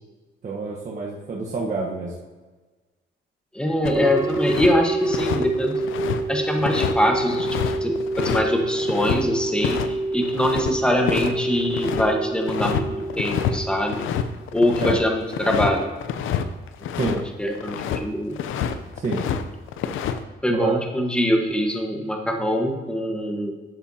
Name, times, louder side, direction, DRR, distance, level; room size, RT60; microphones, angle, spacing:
voice 1, 0.4-2.1 14.8-15.0 17.0-17.2 19.0-19.2 20.5-20.8, right 4 dB, 40° right, -3 dB, 1.2 m, -27 dB
voice 2, 3.5-5.8 6.3-12.9 13.2-14.0 14.5-15.9 17.0-18.4 20.4-23.5, left 1 dB, 5° left, 2 dB, 1.3 m, -23 dB
sound 1, 3.8-4.7 5.0-9.2 9.6-9.9 10.1-12.1 12.5-12.8 13.1-13.6 13.8-17.2 17.5-18.0 18.4-19.4 19.7-20.2, left 9 dB, 80° left, 0.6 m, -28 dB
sound 2, 3.9-14.6, right 2 dB, 15° right, 0.5 m, -27 dB
11.0 x 7.3 x 2.8 m, 1.3 s
cardioid pair, 90°, 20 cm